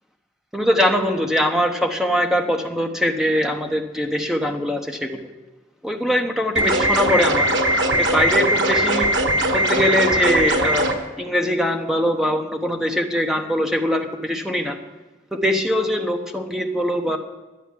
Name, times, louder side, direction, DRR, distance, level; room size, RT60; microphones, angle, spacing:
voice 1, 0.5-5.3 5.8-7.5 8.0-9.1 9.5-10.9 11.2-14.8 15.3-17.2, equal, ahead, 4 dB, 1.0 m, -22 dB
sound 1, 6.6-10.9, right 1 dB, 80° right, 1.3 m, -20 dB
10.5 x 9.8 x 7.4 m, 1.2 s
head